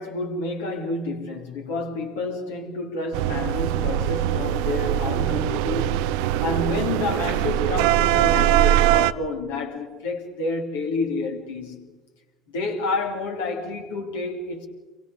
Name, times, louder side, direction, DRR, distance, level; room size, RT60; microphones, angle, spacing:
voice 1, 0.0-12.0 12.5-14.7, left 3 dB, 70° left, 3.0 m, -29 dB
sound 1, 3.1-9.1, right 13 dB, 65° right, 0.6 m, -22 dB
29.0 x 24.0 x 4.1 m
figure-of-eight pair, 60°, 0 cm